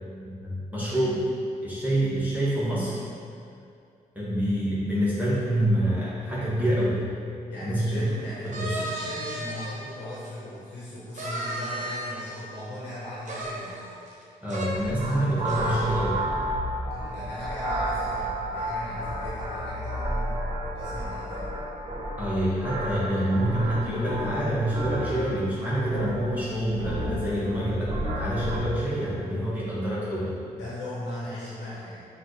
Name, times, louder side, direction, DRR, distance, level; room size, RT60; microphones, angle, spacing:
voice 1, 0.2-1.2 1.6-3.0 4.1-7.0 7.6-8.1 8.4-8.8 14.4-16.2 22.2-30.3, right 1 dB, 10° right, -10 dB, 1.2 m, -27 dB
voice 2, 7.5-13.9 16.9-21.5 30.5-32.0, left 1 dB, 80° left, -8 dB, 1.0 m, -38 dB
sound 1, 8.5-9.7 10.2-10.3 11.1-12.4 13.2-14.2 14.5-14.7 15.1-15.2 15.5-15.9, right 1 dB, 45° right, 1.0 m, -34 dB
sound 2, 14.7-28.6, right 1 dB, 25° right, 1.4 m, -32 dB
5.8 x 2.4 x 3.2 m, 2.4 s
supercardioid pair, 50°, 17 cm